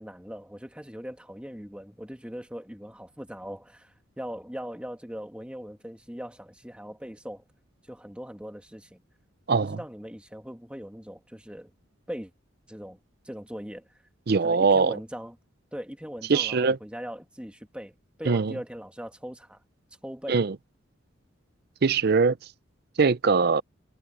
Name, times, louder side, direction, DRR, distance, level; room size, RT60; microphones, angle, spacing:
voice 1, 0.0-7.4 7.8-9.0 9.5-11.7 12.1-12.3 12.7-13.0 13.2-14.0 14.3-15.4 15.7-17.9 18.2-19.6 20.0-20.4, equal, 5° right, 1.8 m, -40 dB
voice 2, 9.5-9.8 14.3-15.0 16.3-16.8 18.3-18.5 20.3-20.5 21.8-22.4 23.0-23.6, right 4 dB, 50° right, 0.5 m, -22 dB
head